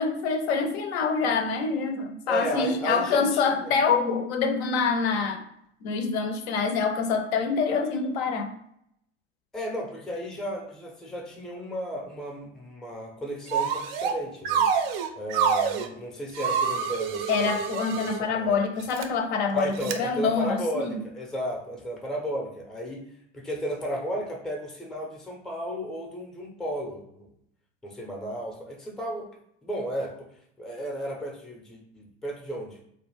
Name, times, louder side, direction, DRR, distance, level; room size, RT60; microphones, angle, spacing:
voice 1, 0.0-5.4 5.8-8.5 17.3-21.0, left 5 dB, 60° left, 6 dB, 0.5 m, -26 dB
voice 2, 2.3-3.7 9.5-14.7 15.2-17.6 17.9-18.6 19.5-23.0 23.3-27.3 27.8-29.3 29.6-30.1 30.6-32.8, equal, ahead, -1 dB, 0.5 m, -34 dB
sound 1, 13.5-14.2 14.5-15.9 16.4-18.2 18.8-19.1 19.8-20.0, right 6 dB, 55° right, 0.4 m, -27 dB
2.4 x 2.1 x 3.1 m, 0.72 s
hypercardioid pair, 85°, 36 cm